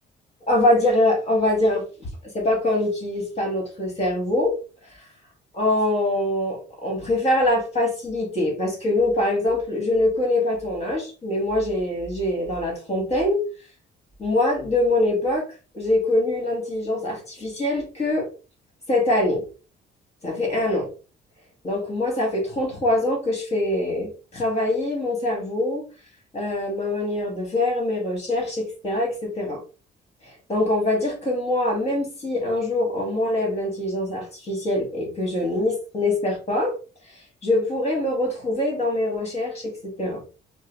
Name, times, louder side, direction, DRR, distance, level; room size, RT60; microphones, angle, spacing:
voice 1, 0.5-2.1 2.3-4.5 5.5-13.4 14.2-15.4 15.7-18.3 18.9-19.4 20.2-20.9 21.6-25.8 26.3-29.6 30.2-36.7 37.4-40.2, left 1 dB, 35° left, 0 dB, 1.9 m, -23 dB
4.5 x 2.0 x 3.2 m, 0.34 s
cardioid pair, 90°, 20 cm